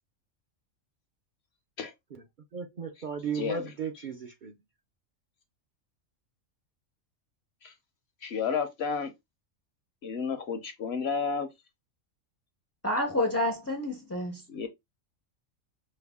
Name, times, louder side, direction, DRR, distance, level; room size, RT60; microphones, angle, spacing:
voice 1, 2.5-4.6, right 6 dB, 50° right, 0.6 m, -35 dB
voice 2, 8.2-9.1 10.0-11.5 14.5-14.7, left 6 dB, 60° left, 0.8 m, -31 dB
voice 3, 12.8-14.4, left 1 dB, 20° left, 0.4 m, -29 dB
5.5 x 2.1 x 3.5 m
omnidirectional pair, 1.4 m